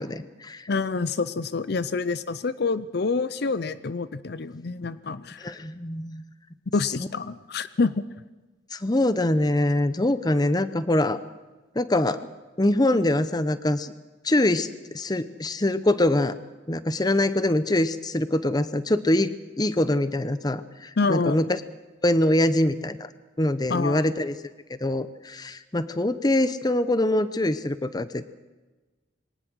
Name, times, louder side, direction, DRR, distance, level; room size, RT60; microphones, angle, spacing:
voice 1, 0.0-0.7 5.4-6.2 8.7-11.2 11.7-12.3 12.6-13.9 14.2-14.7 14.9-16.4 16.7-21.6 22.0-23.1 23.4-24.3 24.8-28.3, left 1 dB, 20° left, 13 dB, 0.8 m, -24 dB
voice 2, 0.7-5.6 6.7-8.0 21.0-21.4 23.7-24.0, left 4 dB, 55° left, 15 dB, 0.6 m, -27 dB
22.5 x 18.5 x 6.3 m, 1.2 s
head